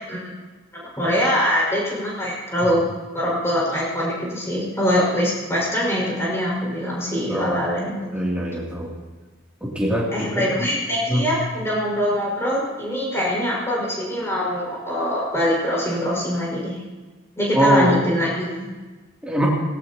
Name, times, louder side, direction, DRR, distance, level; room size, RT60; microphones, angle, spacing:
voice 1, 0.7-2.9 3.1-8.0 10.1-16.8 17.4-18.7, equal, 15° left, -5 dB, 5.6 m, -23 dB
voice 2, 7.3-7.7 8.1-8.9 9.6-10.5 11.1-11.2 17.5-17.9 19.2-19.5, equal, 5° right, -5 dB, 2.8 m, -22 dB
19.0 x 17.0 x 3.0 m, 1.3 s
head